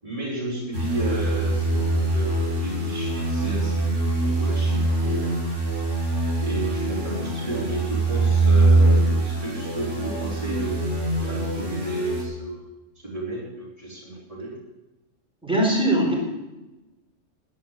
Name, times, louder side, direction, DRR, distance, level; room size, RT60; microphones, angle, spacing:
voice 1, 0.0-3.9 4.2-5.4 6.4-12.6 13.0-14.5, right 2 dB, 25° right, -8 dB, 4.8 m, -32 dB
sound 1, 0.7-12.2, right 2 dB, 70° right, 4.4 m, -23 dB
voice 2, 15.4-16.1, right 1 dB, 5° right, -2 dB, 4.3 m, -20 dB
11.5 x 11.0 x 7.6 m, 1.0 s
omnidirectional pair, 1.3 m